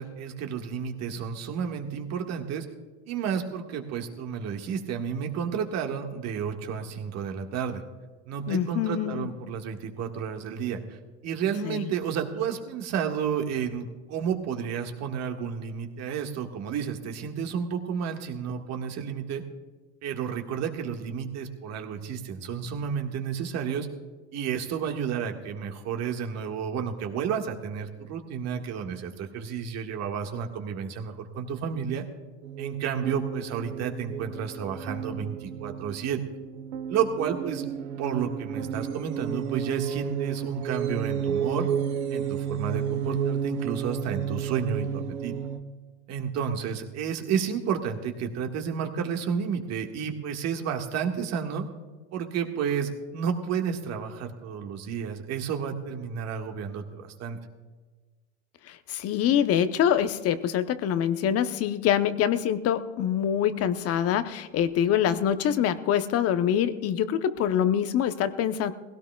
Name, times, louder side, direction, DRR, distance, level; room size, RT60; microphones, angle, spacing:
voice 1, 0.0-2.7 3.1-7.8 8.3-11.0 11.2-19.4 20.0-23.9 24.3-32.0 32.6-36.2 36.9-41.7 42.1-45.4 46.1-51.7 52.1-57.4, right 7 dB, 50° right, 3 dB, 1.8 m, -31 dB
voice 2, 8.5-9.3 11.6-11.9 58.7-68.7, left 9 dB, 45° left, 11 dB, 0.9 m, -25 dB
sound 1, 32.4-45.6, right 8 dB, 75° right, 1.1 m, -32 dB
20.0 x 17.0 x 2.3 m, 1.3 s
hypercardioid pair, 95°, 35 cm